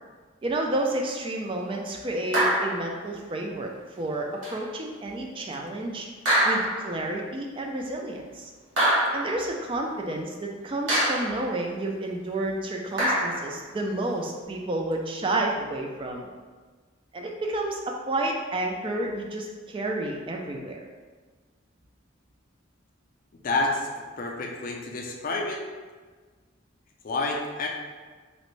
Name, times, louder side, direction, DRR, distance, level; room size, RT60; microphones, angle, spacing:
voice 1, 0.4-3.7 4.0-6.1 6.4-8.5 9.1-16.3 17.1-20.9, right 1 dB, 25° right, 1 dB, 0.3 m, -30 dB
sound 1, 2.3-2.9 4.4-4.6 6.3-7.0 8.8-9.4 10.9-11.5 13.0-13.5, right 1 dB, 75° right, 1.3 m, -24 dB
voice 2, 23.4-23.9 24.2-25.6 27.0-27.7, left 2 dB, 45° left, 1 dB, 0.4 m, -28 dB
3.1 x 2.5 x 3.1 m, 1.4 s
head